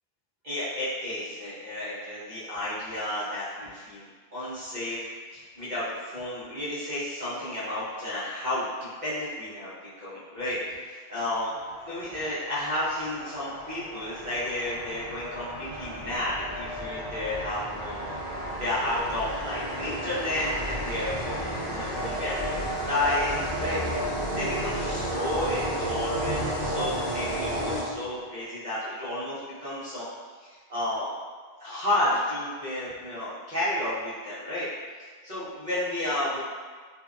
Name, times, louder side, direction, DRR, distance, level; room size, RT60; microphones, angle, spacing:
voice 1, 0.4-8.7 9.0-9.7 10.0-11.5 11.8-18.1 18.5-23.8 24.3-30.1 30.4-31.1 31.6-34.7 35.2-36.4, left 1 dB, 50° right, -11 dB, 0.9 m, -32 dB
sound 1, 11.5-28.3, right 1 dB, 45° left, 0.6 m, -33 dB
2.6 x 2.1 x 2.4 m, 1.5 s
omnidirectional pair, 1.0 m